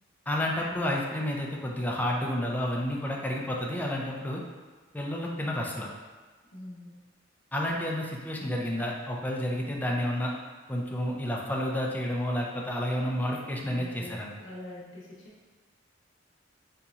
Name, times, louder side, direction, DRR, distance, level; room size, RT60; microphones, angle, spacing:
voice 1, 0.3-4.4 4.9-5.9 7.5-10.3 10.7-14.3, left 1 dB, 10° left, -1 dB, 0.4 m, -30 dB
voice 2, 6.5-6.9 13.6-15.4, left 1 dB, 85° left, -5 dB, 0.8 m, -44 dB
4.2 x 2.7 x 2.4 m, 1.4 s
head